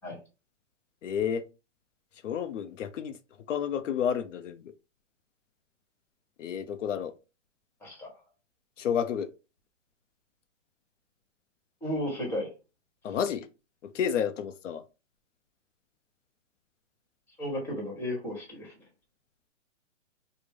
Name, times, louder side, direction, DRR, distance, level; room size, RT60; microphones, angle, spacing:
voice 1, 1.0-1.5 2.2-3.2 3.5-4.7 6.4-7.1 8.8-9.3 13.0-13.5 13.8-14.8, left 8 dB, 80° left, 0.6 m, -30 dB
voice 2, 11.8-12.5 17.4-18.7, left 1 dB, 5° left, 1.1 m, -33 dB
3.4 x 2.0 x 3.5 m
hypercardioid pair, 150°, 36 cm